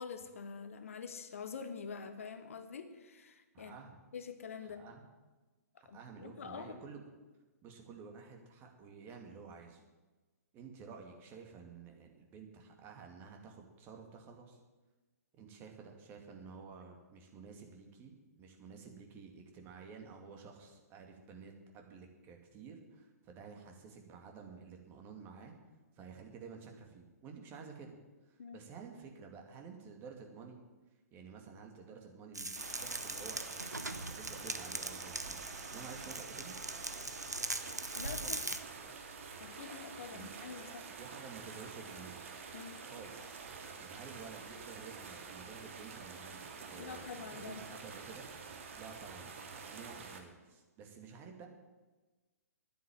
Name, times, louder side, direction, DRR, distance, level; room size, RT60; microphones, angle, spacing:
voice 1, 0.0-3.7 4.1-4.8 5.9-6.8 28.4-28.6 37.9-38.4 39.4-40.9 42.5-42.8 46.8-47.6, left 6 dB, 55° left, 9 dB, 1.3 m, -46 dB
voice 2, 3.5-4.0 4.6-5.0 5.8-7.1 7.6-9.8 10.5-14.6 15.4-25.5 26.0-27.9 28.3-30.6 31.1-33.6 33.9-35.4 35.7-36.5 38.1-38.4 40.1-40.3 41.0-42.2 42.8-43.3 43.8-48.3 48.8-49.3 49.6-51.5, right 5 dB, 25° right, 3 dB, 2.4 m, -51 dB
sound 1, 32.3-38.6, right 2 dB, 85° right, 1.1 m, -41 dB
sound 2, 32.6-50.2, right 5 dB, 50° right, 2.3 m, -48 dB
11.0 x 9.4 x 8.9 m, 1.2 s
figure-of-eight pair, 120°, 9 cm